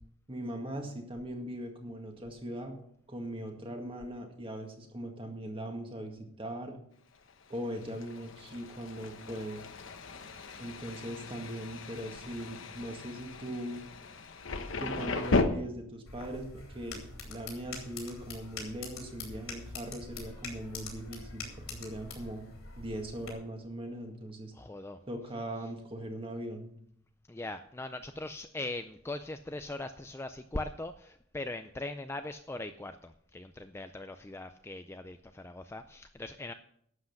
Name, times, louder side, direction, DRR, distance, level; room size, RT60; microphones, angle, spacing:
voice 1, 0.3-2.8 3.1-6.8 7.5-9.7 10.6-13.8 14.8-22.5 22.8-24.5 25.1-26.7, right 1 dB, 25° right, 3 dB, 1.9 m, -40 dB
Thunder, 7.3-15.4, left 3 dB, 65° left, 1.1 m, -36 dB
sound 1, 16.1-23.3, left 3 dB, 85° left, 3.6 m, -44 dB
voice 2, 24.5-25.0 27.3-36.5, left 2 dB, 10° left, 8 dB, 0.3 m, -40 dB
11.5 x 7.8 x 5.9 m, 0.68 s
head